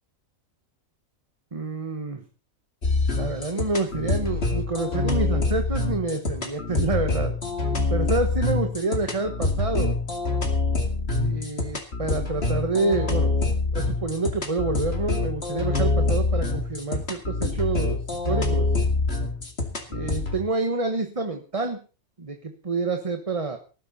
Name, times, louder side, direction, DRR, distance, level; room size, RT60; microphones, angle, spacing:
voice 1, 1.5-2.2 3.2-7.3 7.9-10.0 11.2-13.3 13.7-18.7 19.9-21.8 22.2-23.6, right 3 dB, 25° right, 6 dB, 1.3 m, -28 dB
sound 1, 2.8-20.4, left 3 dB, 45° left, 2.7 m, -25 dB
19.0 x 12.5 x 4.2 m, 0.36 s
omnidirectional pair, 1.5 m